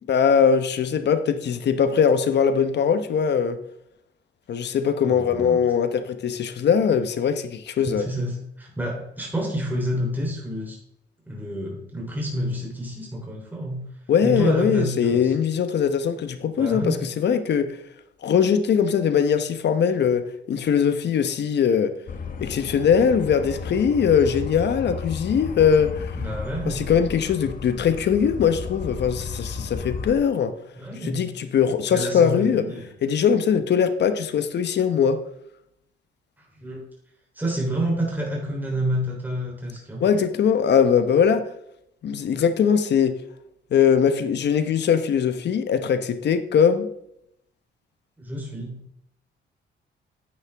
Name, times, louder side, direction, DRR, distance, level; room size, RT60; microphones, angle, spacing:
voice 1, 0.1-3.6 4.5-8.0 14.1-17.8 18.2-21.9 22.4-26.2 26.7-30.5 31.0-32.7 33.0-35.2 40.0-41.5 42.0-43.2 43.7-46.9, left 7 dB, 60° left, 1.0 m, -21 dB
voice 2, 5.0-5.6 7.8-10.8 11.3-13.8 14.2-15.3 16.5-17.0 26.2-26.9 30.8-31.3 31.9-32.9 36.4-36.8 37.4-40.1 48.2-48.8, right 1 dB, 10° right, 3.4 m, -29 dB
sound 1, 22.1-30.1, left 5 dB, 45° left, 1.2 m, -33 dB
9.6 x 8.9 x 3.5 m
cardioid pair, 90°, 20 cm